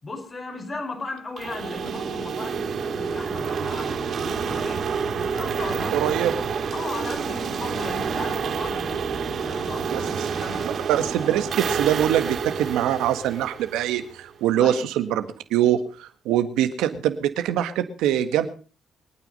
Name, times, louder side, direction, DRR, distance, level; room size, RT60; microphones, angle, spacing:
voice 1, 0.0-6.3 6.7-10.7 14.6-14.9, left 3 dB, 40° left, 4.8 m, -36 dB
sound 1, 1.4-14.2, right 6 dB, 60° right, 3.6 m, -28 dB
voice 2, 5.9-6.3 9.9-10.0 10.6-15.2 15.5-18.5, right 11 dB, 85° right, 1.6 m, -23 dB
23.5 x 9.3 x 5.5 m
supercardioid pair, 55°, 0 cm